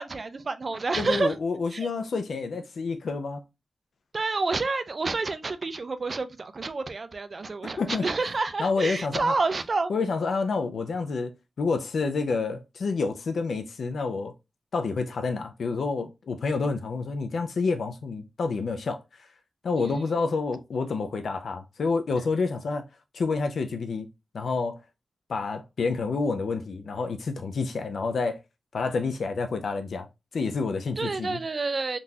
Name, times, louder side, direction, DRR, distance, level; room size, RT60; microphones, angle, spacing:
voice 1, 0.0-1.3 1.7-1.9 4.1-9.9 19.8-19.9 31.0-32.0, right 3 dB, 40° right, 0.4 m, -29 dB
voice 2, 1.0-3.4 7.8-8.1 8.6-9.4 9.9-14.3 14.7-19.3 19.6-22.9 23.1-24.1 24.3-24.8 25.3-28.4 28.7-30.1 30.3-31.4, left 4 dB, 75° left, 0.4 m, -28 dB
3.7 x 2.4 x 2.7 m
wide cardioid pair, 140°, 0 cm